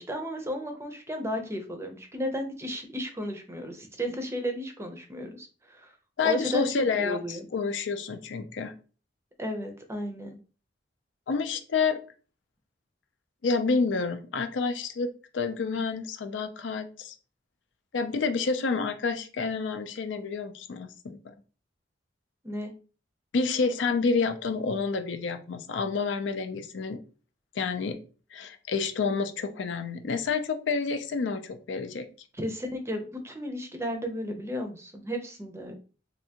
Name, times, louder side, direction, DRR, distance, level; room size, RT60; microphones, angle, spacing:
voice 1, 0.0-5.9 6.2-7.5 9.4-10.4 22.4-22.7 32.3-35.7, equal, 15° right, 5 dB, 0.5 m, -34 dB
voice 2, 6.2-8.7 11.3-12.0 13.4-17.1 17.9-21.2 23.3-27.0 27.6-28.0 28.3-32.1, left 4 dB, 75° left, 9 dB, 0.4 m, -29 dB
3.3 x 2.6 x 2.8 m, 0.37 s
head